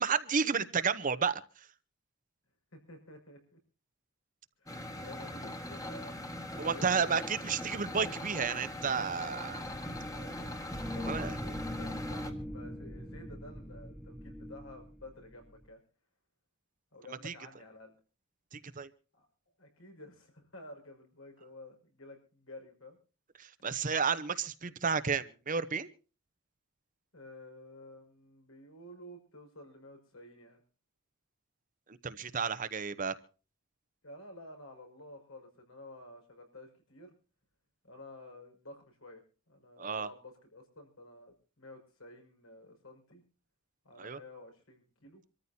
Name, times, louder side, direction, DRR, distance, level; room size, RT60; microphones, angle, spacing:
voice 1, 0.0-1.4 6.6-9.7 11.0-11.3 17.2-17.3 18.5-18.9 23.4-25.9 31.9-33.1 39.8-40.1 44.0-44.2, right 6 dB, 40° right, 13 dB, 0.8 m, -32 dB
voice 2, 2.7-3.6 4.6-6.2 6.5-7.2 9.9-10.6 10.9-15.8 16.9-18.0 19.1-19.3 19.6-23.0 27.1-30.6 34.0-37.1 37.8-39.2 39.5-43.2 43.8-45.2, left 1 dB, 75° left, 4 dB, 5.9 m, -51 dB
sound 1, 4.7-12.3, left 1 dB, 15° left, 1.7 m, -41 dB
sound 2, 9.7-15.7, left 1 dB, ahead, 0.8 m, -41 dB
26.0 x 14.0 x 2.8 m, 0.36 s
head